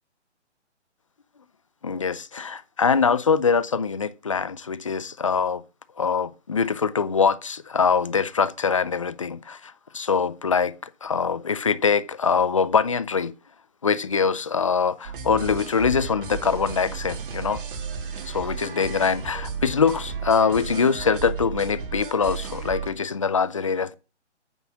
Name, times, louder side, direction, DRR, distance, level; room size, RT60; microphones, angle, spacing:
voice 1, 1.8-5.6 6.0-13.3 13.8-17.6 18.3-24.0, left 5 dB, 30° left, 0.4 m, -23 dB
sound 1, 15.0-22.9, right 5 dB, 45° right, 2.6 m, -34 dB
9.5 x 7.1 x 5.9 m
hypercardioid pair, 155°, 36 cm